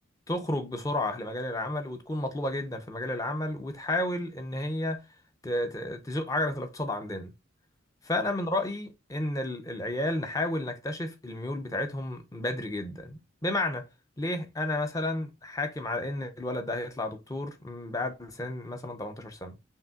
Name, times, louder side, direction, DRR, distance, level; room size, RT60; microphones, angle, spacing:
voice 1, 0.3-5.0 5.4-7.3 8.1-13.9 14.2-19.6, left 1 dB, 15° left, 0.5 m, -32 dB
5.4 x 2.7 x 2.3 m
head